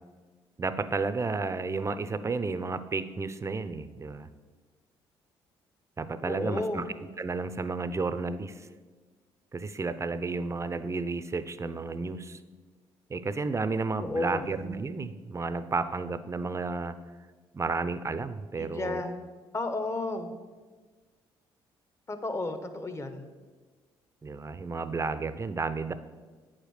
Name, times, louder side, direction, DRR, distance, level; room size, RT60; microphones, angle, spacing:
voice 1, 0.6-4.3 6.0-6.8 7.2-8.7 9.5-12.4 13.1-17.0 17.5-19.1 24.2-25.9, right 4 dB, 25° right, 13 dB, 0.6 m, -32 dB
voice 2, 6.2-6.8 14.0-14.5 18.6-19.2 19.5-20.3 22.1-23.2, left 2 dB, 25° left, 8 dB, 1.1 m, -32 dB
8.5 x 5.1 x 6.5 m, 1.4 s
supercardioid pair, 65°, 11 cm